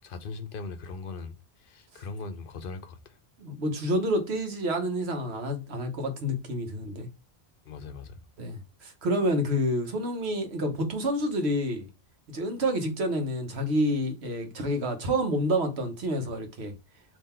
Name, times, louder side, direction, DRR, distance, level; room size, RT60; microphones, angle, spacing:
voice 1, 0.0-3.2 7.7-8.2, left 4 dB, 60° left, 0.7 m, -40 dB
voice 2, 3.4-7.1 8.4-11.9 12.3-16.7, equal, 80° right, 1.2 m, -28 dB
3.8 x 2.8 x 4.2 m
omnidirectional pair, 1.1 m